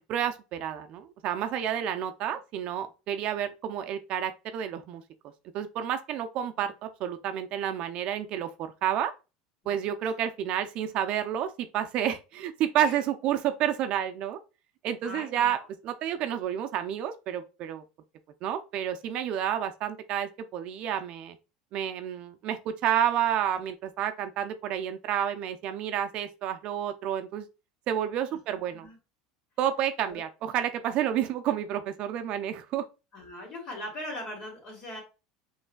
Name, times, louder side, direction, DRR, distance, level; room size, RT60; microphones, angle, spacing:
voice 1, 0.1-5.0 5.5-8.5 8.8-9.1 9.7-14.4 14.8-15.6 15.8-17.8 18.4-21.4 21.7-27.5 27.9-28.9 29.6-32.9, right 10 dB, 50° right, 0.5 m, -30 dB
voice 2, 15.0-15.7 28.8-29.0 30.1-30.2 33.1-35.0, left 1 dB, 40° left, 2.5 m, -40 dB
5.4 x 3.2 x 2.2 m
supercardioid pair, 125°, 2 cm